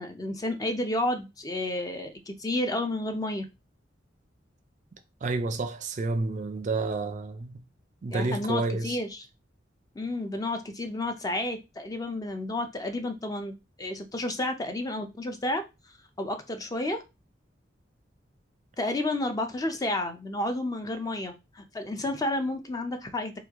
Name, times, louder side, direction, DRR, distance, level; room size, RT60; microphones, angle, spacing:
voice 1, 0.0-3.4 8.1-9.2 10.0-13.5 13.8-15.6 16.2-17.0 18.8-23.3, left 1 dB, 20° left, 0.4 m, -31 dB
voice 2, 5.2-7.6 8.0-9.0, right 3 dB, 40° right, 0.4 m, -30 dB
3.0 x 2.4 x 3.4 m
head